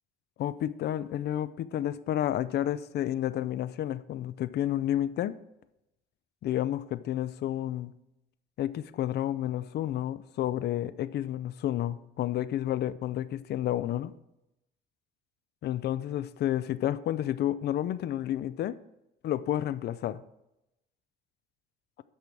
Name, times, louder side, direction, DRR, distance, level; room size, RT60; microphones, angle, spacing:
voice 1, 0.4-5.4 6.4-7.9 8.6-14.1 15.6-18.8 19.2-20.2, left 12 dB, 55° left, 0.5 m, -30 dB
8.7 x 6.0 x 4.7 m
cardioid pair, 95°, 20 cm